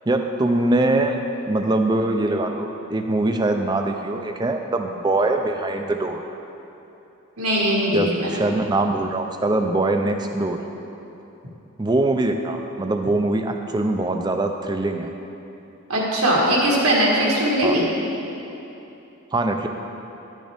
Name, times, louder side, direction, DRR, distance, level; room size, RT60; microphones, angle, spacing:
voice 1, 0.1-1.2 1.5-6.2 7.9-10.6 11.8-15.1 17.6-17.8 19.3-19.7, right 2 dB, 20° right, 5 dB, 0.4 m, -22 dB
voice 2, 7.4-8.3 15.9-17.8, right 1 dB, 85° right, -3 dB, 1.7 m, -20 dB
11.5 x 6.3 x 3.5 m, 2.9 s
head